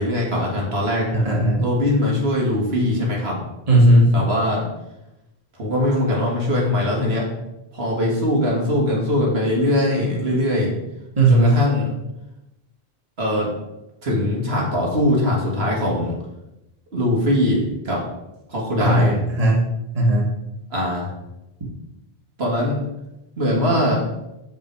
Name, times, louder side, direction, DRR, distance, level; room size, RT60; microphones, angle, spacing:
voice 1, 0.0-1.1 1.6-3.4 4.0-4.7 5.6-7.3 7.7-10.8 11.3-11.9 13.2-13.5 14.0-16.1 16.9-18.0 18.5-19.1 20.7-21.1 22.4-22.8 23.4-24.1, left 1 dB, 75° right, -3 dB, 2.1 m, -21 dB
voice 2, 1.1-1.6 3.7-4.1 11.2-11.6 18.8-19.6 19.9-20.3, right 1 dB, 35° right, -3 dB, 1.8 m, -16 dB
7.3 x 5.6 x 4.6 m, 0.92 s
omnidirectional pair, 1.1 m